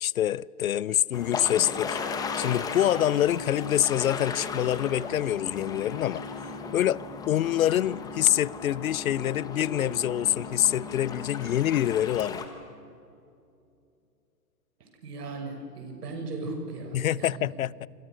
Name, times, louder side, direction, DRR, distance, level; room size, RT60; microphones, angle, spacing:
voice 1, 0.0-2.0 2.4-6.2 6.7-7.0 7.3-12.4 16.9-17.9, left 11 dB, 55° left, 0.6 m, -26 dB
sound 1, 1.1-12.4, left 4 dB, 5° left, 1.2 m, -36 dB
voice 2, 14.8-17.4, right 2 dB, 70° right, 6.8 m, -37 dB
27.5 x 26.0 x 6.4 m
hypercardioid pair, 155°, 50 cm